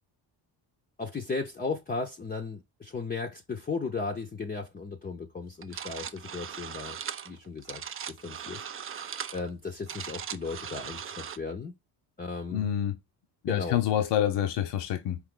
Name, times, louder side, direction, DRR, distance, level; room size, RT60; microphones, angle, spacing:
voice 1, 1.0-7.0 7.3-7.8 8.1-8.6 8.9-11.7 12.2-12.7 13.5-13.8, left 4 dB, 20° left, 0.6 m, -35 dB
sound 1, 5.6-11.4, right 8 dB, 30° right, 0.4 m, -39 dB
voice 2, 12.5-13.0 13.4-15.2, left 10 dB, 70° left, 0.8 m, -27 dB
4.7 x 3.1 x 3.7 m
cardioid pair, 105°, 43 cm